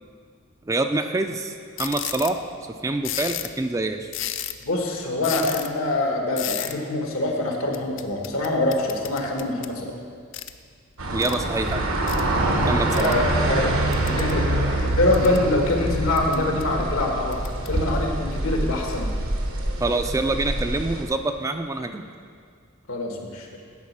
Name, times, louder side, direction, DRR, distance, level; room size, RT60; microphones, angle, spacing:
voice 1, 0.7-1.5 1.8-2.4 2.8-4.1 11.1-12.0 12.5-13.1 19.8-22.0, right 2 dB, 15° right, 7 dB, 0.3 m, -26 dB
sound 1, 1.8-2.4 3.0-3.6 4.1-4.7 5.2-5.7 6.4-6.7 7.7-9.8 10.3-10.6 11.2-11.4 12.1-12.2 12.9-13.1 13.9-14.4 14.9-15.4 16.2-16.6 17.3-17.7, left 12 dB, 60° left, 0.4 m, -32 dB
voice 2, 4.6-9.9 12.9-13.7 14.0-17.4 17.7-19.1 22.9-23.5, left 2 dB, 80° left, 1 dB, 1.6 m, -24 dB
sound 2, 11.0-21.0, right 1 dB, 80° right, 1.2 m, -25 dB
10.5 x 5.2 x 7.3 m, 2.1 s
head